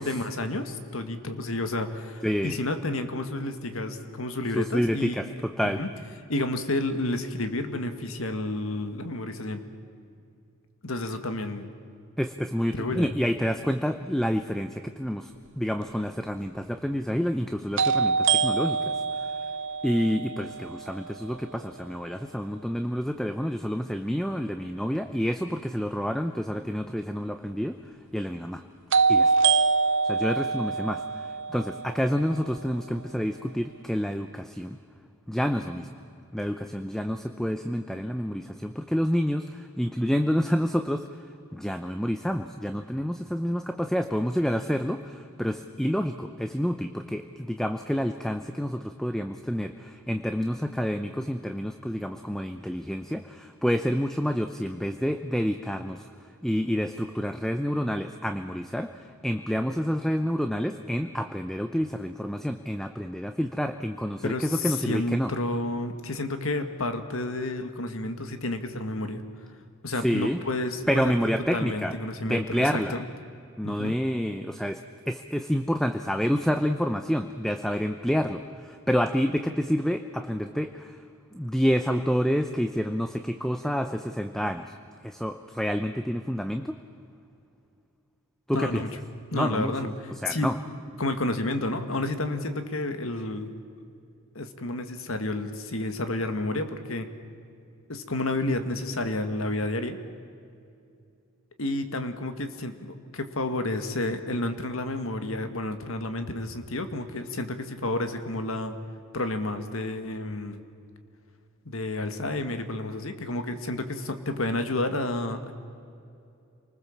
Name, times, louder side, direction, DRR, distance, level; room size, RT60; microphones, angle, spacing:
voice 1, 0.0-5.1 5.6-5.9 6.3-9.6 10.8-11.7 12.7-13.1 64.2-69.2 69.8-71.1 71.5-72.8 73.6-74.0 88.5-88.9 89.3-89.9 90.3-90.5 91.0-93.5 94.4-97.1 97.9-100.0 101.6-108.8 109.1-110.6 111.7-115.5, left 2 dB, 80° left, 8 dB, 1.8 m, -30 dB
voice 2, 2.2-2.6 4.6-5.8 12.2-19.3 19.8-27.8 28.1-28.6 29.1-29.5 30.0-34.8 35.3-35.9 36.3-41.1 41.5-56.1 56.4-65.3 69.9-70.4 70.9-72.0 72.2-73.0 73.6-74.8 75.1-81.0 81.3-84.7 85.0-86.8 88.5-88.8 89.3-89.7 90.1-90.6, equal, ahead, 8 dB, 0.6 m, -28 dB
sound 1, 15.8-15.9 17.8-21.7 28.9-32.9, right 5 dB, 60° right, 0.7 m, -25 dB
27.5 x 20.0 x 7.3 m, 2.5 s
head